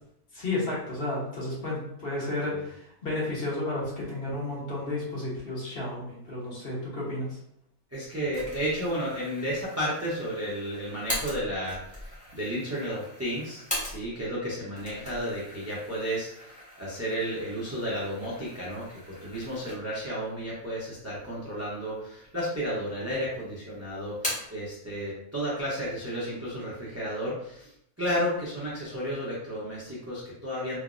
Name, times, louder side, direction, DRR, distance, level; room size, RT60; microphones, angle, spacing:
voice 1, 0.3-7.3, left 2 dB, 50° left, -5 dB, 1.0 m, -32 dB
voice 2, 7.9-30.8, equal, 25° right, -7 dB, 0.3 m, -32 dB
sound 1, 8.3-14.3 14.6-20.1 20.5-20.6 21.5-22.1 22.4-23.2 23.5-24.6, equal, 5° left, 0.9 m, -40 dB
3.3 x 2.0 x 2.4 m, 0.74 s
omnidirectional pair, 1.5 m